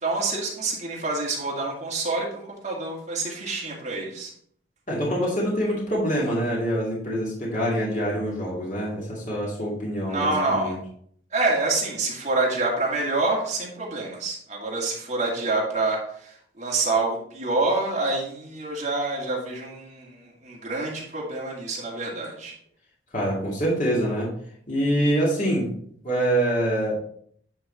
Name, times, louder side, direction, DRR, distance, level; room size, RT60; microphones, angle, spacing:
voice 1, 0.0-4.3 10.0-10.7 11.3-22.5, right 3 dB, 40° right, -3 dB, 2.3 m, -27 dB
voice 2, 4.9-10.8 23.1-24.3 24.7-25.7 26.0-26.9, right 1 dB, 45° left, -4 dB, 2.3 m, -25 dB
9.4 x 4.6 x 4.2 m, 0.62 s
head